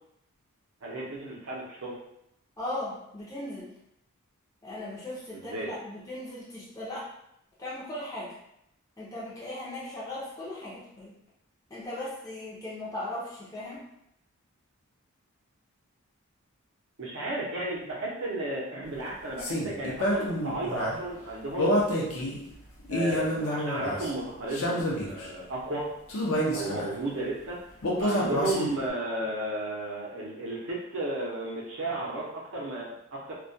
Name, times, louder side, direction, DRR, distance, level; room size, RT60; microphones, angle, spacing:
voice 1, 0.8-1.9 5.3-5.7 17.0-22.0 22.9-25.9 26.5-27.6 28.0-33.3, right 1 dB, 55° right, -3 dB, 0.6 m, -34 dB
voice 2, 2.6-3.7 4.6-7.1 7.6-8.3 9.0-11.1 11.7-13.8, left 1 dB, 15° left, -7 dB, 0.5 m, -38 dB
sound 1, 19.4-21.0 21.6-22.4 22.8-24.1 24.5-25.3 26.1-26.9 27.8-28.9, equal, 65° left, 0.5 m, -28 dB
2.2 x 2.1 x 2.6 m, 0.79 s
head